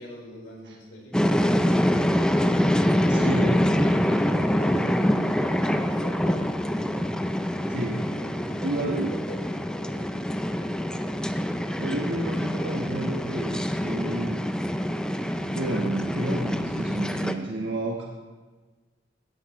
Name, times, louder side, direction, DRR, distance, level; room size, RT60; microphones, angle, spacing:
voice 1, 0.0-5.0 5.4-6.8 8.2-11.2, left 1 dB, 75° left, -2 dB, 4.4 m, -44 dB
sound 1, 1.1-17.3, equal, 5° left, 0.5 m, -25 dB
voice 2, 3.1-3.6 7.7-8.1 8.6-9.1 11.8-14.4 15.5-18.1, right 1 dB, 65° right, -1 dB, 1.3 m, -30 dB
16.0 x 13.5 x 3.1 m, 1.3 s
head